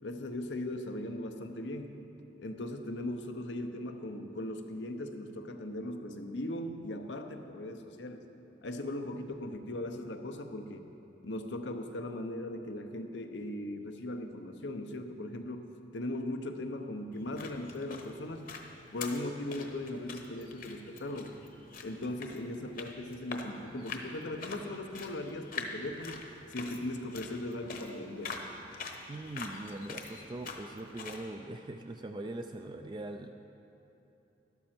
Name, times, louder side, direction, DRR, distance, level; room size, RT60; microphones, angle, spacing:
voice 1, 0.0-2.0 2.4-8.2 8.6-10.9 11.2-18.4 18.9-21.4 21.8-26.2 26.5-28.4, left 1 dB, 90° left, 6 dB, 0.8 m, -38 dB
sound 1, 17.1-31.2, left 4 dB, 50° left, 1.0 m, -45 dB
voice 2, 29.1-33.3, right 2 dB, 25° right, 5 dB, 0.3 m, -41 dB
12.5 x 12.0 x 4.4 m, 2.9 s
head